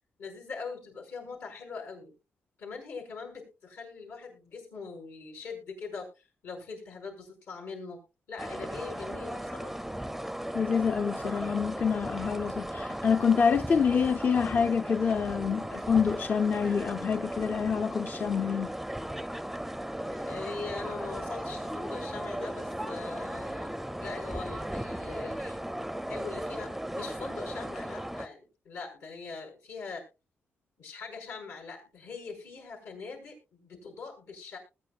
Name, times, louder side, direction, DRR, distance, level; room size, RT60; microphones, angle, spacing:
voice 1, 0.2-2.1 2.6-8.0 8.3-9.8 20.0-23.7 24.0-25.6 26.1-30.0 30.8-34.6, left 4 dB, 80° left, 6.4 m, -42 dB
sound 1, 8.4-28.3, right 1 dB, 5° right, 0.5 m, -36 dB
voice 2, 10.5-18.7, left 6 dB, 45° left, 0.5 m, -27 dB
20.0 x 9.7 x 2.4 m
cardioid pair, 115°, 4 cm